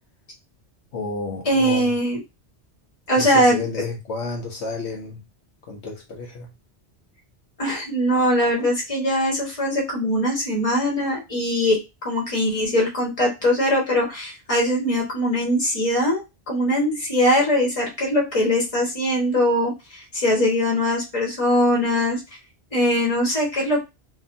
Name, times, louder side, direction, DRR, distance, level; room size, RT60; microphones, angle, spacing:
voice 1, 0.9-2.0 3.2-5.2 5.7-6.5, left 3 dB, 75° left, 1.1 m, -31 dB
voice 2, 1.5-2.2 3.1-3.6 7.6-22.2 22.7-23.8, equal, 30° left, 1.2 m, -21 dB
2.7 x 2.4 x 2.5 m
omnidirectional pair, 1.2 m